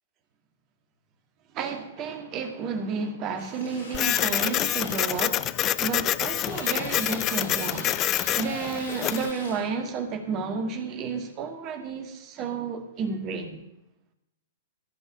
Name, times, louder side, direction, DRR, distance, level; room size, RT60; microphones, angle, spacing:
voice 1, 1.5-5.5 5.8-7.9 8.4-13.6, right 5 dB, 35° right, 2.1 m, -31 dB
Domestic sounds home sounds, 3.4-9.7, left 2 dB, 60° left, 6.4 m, -43 dB
Printer, 3.9-9.3, left 12 dB, 30° left, 0.4 m, -27 dB
15.0 x 5.4 x 9.1 m
figure-of-eight pair, 110°, 0 cm